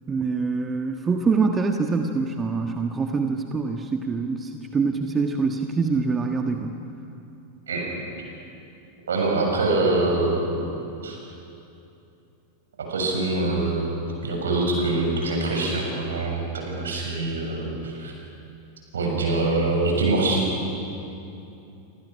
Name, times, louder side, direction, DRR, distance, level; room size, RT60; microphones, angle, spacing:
voice 1, 0.1-6.8, right 4 dB, 20° right, 4 dB, 1.5 m, -25 dB
voice 2, 9.1-10.7 11.0-11.2 12.8-13.9 14.2-18.1 18.9-20.5, right 2 dB, 65° right, 0 dB, 7.0 m, -24 dB
28.0 x 26.5 x 6.3 m, 2.8 s
figure-of-eight pair, 90°, 0 cm